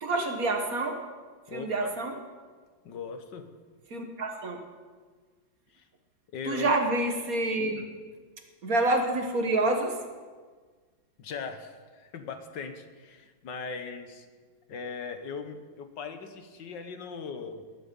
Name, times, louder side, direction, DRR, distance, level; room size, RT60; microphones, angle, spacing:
voice 1, 0.0-1.0 1.5-2.2 3.9-4.6 6.4-7.8 8.6-10.0, right 2 dB, 50° right, 4 dB, 1.8 m, -27 dB
voice 2, 1.5-1.9 2.8-3.5 5.7-5.9 6.3-6.7 11.2-14.3 14.7-17.7, left 5 dB, 70° left, 8 dB, 1.7 m, -39 dB
18.5 x 11.0 x 5.4 m, 1.5 s
omnidirectional pair, 2.0 m